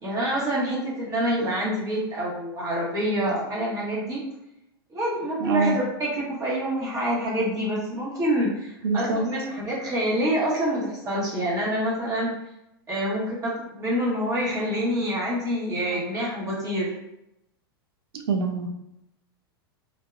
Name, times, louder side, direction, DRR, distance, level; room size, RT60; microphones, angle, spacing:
voice 1, 0.0-4.2 4.9-12.4 12.9-16.9, equal, 30° right, -7 dB, 1.0 m, -26 dB
voice 2, 5.4-5.8 8.8-9.3 18.3-18.7, right 3 dB, 85° right, 5 dB, 0.4 m, -24 dB
2.7 x 2.0 x 2.3 m, 0.83 s
hypercardioid pair, 110°, 13 cm